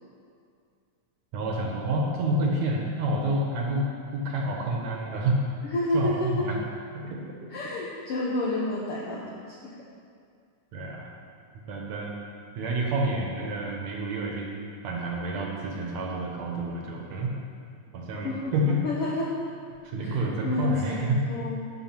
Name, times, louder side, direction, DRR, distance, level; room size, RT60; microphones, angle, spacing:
voice 1, 1.3-5.4 5.9-6.6 6.9-7.5 10.7-11.1 11.6-12.1 12.6-17.3 17.9-18.8 19.8-21.5, right 1 dB, 70° right, -1 dB, 2.0 m, -29 dB
voice 2, 5.7-6.4 7.5-9.7 18.2-19.4 20.0-21.7, left 1 dB, 75° left, -4 dB, 1.3 m, -30 dB
11.5 x 6.3 x 4.5 m, 2.3 s
omnidirectional pair, 3.7 m